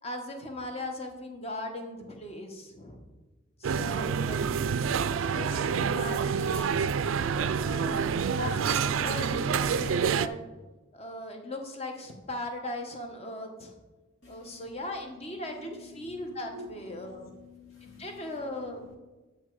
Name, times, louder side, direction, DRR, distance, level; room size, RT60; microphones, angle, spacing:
voice 1, 0.0-3.0 3.6-4.5 5.3-7.0 7.5-10.4 10.9-13.8 14.3-15.7 16.0-17.3 17.8-18.8, left 1 dB, 30° left, 3 dB, 1.2 m, -38 dB
sound 1, 3.6-10.3, right 6 dB, 80° right, 0.4 m, -28 dB
voice 2, 14.2-19.0, left 2 dB, 75° left, -1 dB, 2.4 m, -49 dB
9.9 x 5.8 x 4.7 m, 1.2 s
head